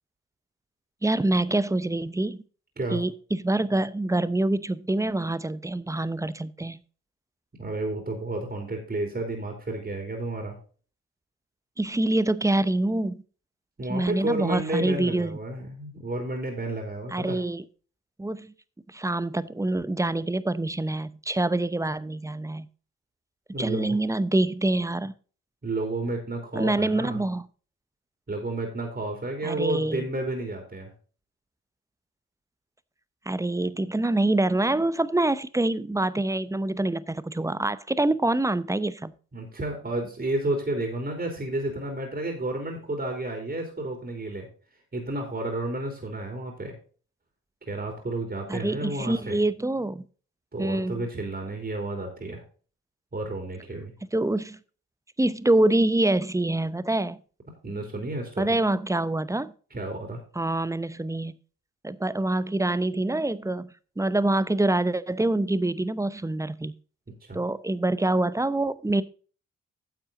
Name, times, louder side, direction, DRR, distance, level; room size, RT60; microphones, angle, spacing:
voice 1, 1.0-2.4 2.9-6.8 11.8-13.2 13.9-15.4 17.1-17.6 18.2-18.5 18.9-22.7 23.6-25.1 26.5-27.4 29.4-30.1 33.3-39.1 48.5-50.0 50.6-51.0 54.1-54.6 55.2-57.2 58.4-59.5 60.4-61.4 61.8-66.8 67.3-69.0, right 2 dB, 10° right, 16 dB, 0.8 m, -25 dB
voice 2, 7.6-10.6 13.8-17.4 23.5-24.0 25.6-27.2 28.3-30.9 39.3-44.5 44.9-46.7 47.7-49.4 50.5-52.4 53.1-53.9 57.6-58.6 59.7-60.2 67.1-67.4, right 2 dB, 30° right, 3 dB, 3.2 m, -31 dB
10.5 x 7.2 x 3.8 m, 0.40 s
hypercardioid pair, 45°, 33 cm